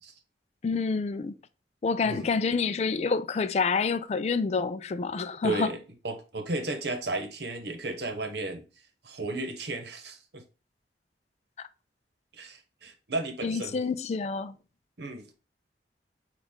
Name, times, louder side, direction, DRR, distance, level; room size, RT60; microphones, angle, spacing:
voice 1, 0.6-1.4 1.8-5.7 13.4-14.6, left 4 dB, 35° left, 0.3 m, -28 dB
voice 2, 5.4-5.8 6.0-8.6 9.0-10.4 12.3-13.8 15.0-15.3, right 2 dB, 70° right, 1.0 m, -34 dB
6.1 x 2.4 x 3.6 m
head